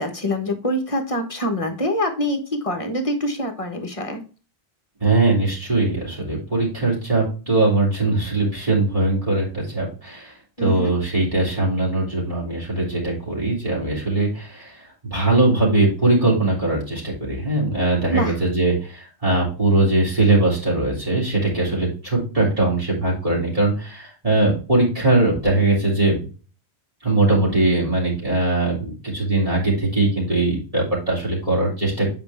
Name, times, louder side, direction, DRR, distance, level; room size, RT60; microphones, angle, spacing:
voice 1, 0.0-4.2 10.6-10.9 18.1-18.3, equal, 30° left, 5 dB, 1.4 m, -25 dB
voice 2, 5.0-14.8 15.1-26.2 27.0-32.1, right 2 dB, 35° right, -6 dB, 3.3 m, -21 dB
8.0 x 5.2 x 3.5 m, 0.35 s
omnidirectional pair, 1.1 m